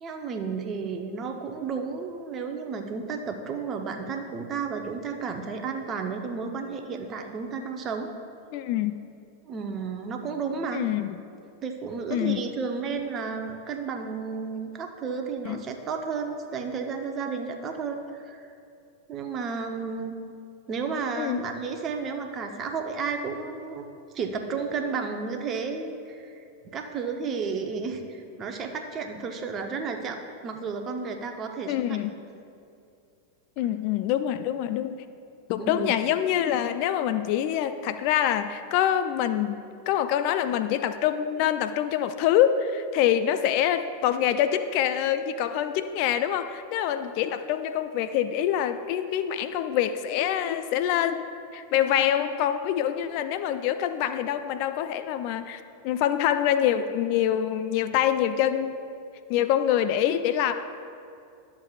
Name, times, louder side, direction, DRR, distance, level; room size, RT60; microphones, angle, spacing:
voice 1, 0.0-8.1 9.5-10.9 11.6-18.5 19.1-20.2 20.7-23.9 24.1-32.0 35.6-35.9, right 5 dB, 35° right, 5 dB, 0.8 m, -32 dB
voice 2, 8.5-8.9 10.7-11.2 12.1-12.4 15.4-15.6 21.2-21.4 31.7-32.1 33.6-35.0 35.5-51.3 51.5-58.8 59.3-60.5, left 10 dB, 50° left, 11 dB, 0.3 m, -25 dB
12.0 x 7.3 x 2.4 m, 2.4 s
hypercardioid pair, 95°, 0 cm